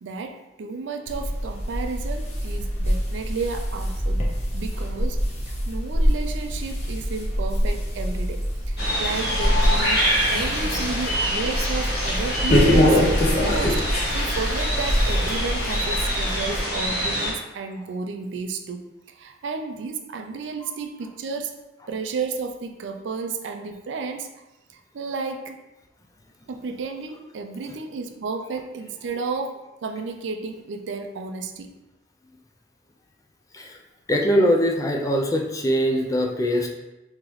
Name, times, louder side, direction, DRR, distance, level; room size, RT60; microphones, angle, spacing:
voice 1, 0.0-4.3 4.5-5.2 5.4-21.5 21.9-24.4 24.7-25.6 26.5-31.7, right 4 dB, 75° right, 5 dB, 0.4 m, -32 dB
sound 1, 1.1-16.6, equal, 35° left, 0.7 m, -24 dB
sound 2, 8.8-17.3, equal, 55° left, 1.4 m, -26 dB
voice 2, 34.1-36.7, equal, 20° left, 2 dB, 0.3 m, -22 dB
3.8 x 2.9 x 3.0 m, 0.99 s
head